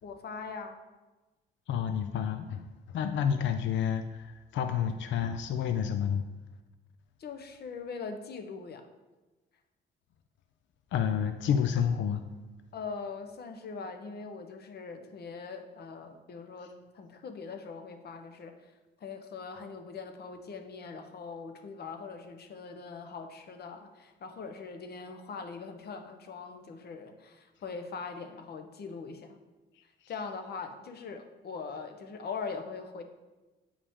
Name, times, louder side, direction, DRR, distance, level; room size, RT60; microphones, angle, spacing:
voice 1, 0.0-0.8 7.2-8.9 12.7-18.7 19.0-29.4 30.1-33.0, left 5 dB, 55° left, 6 dB, 0.9 m, -41 dB
voice 2, 1.7-2.6 2.9-6.2 10.9-12.2, left 8 dB, 70° left, 8 dB, 0.5 m, -29 dB
8.4 x 4.9 x 3.6 m, 1.2 s
cardioid pair, 90°, 20 cm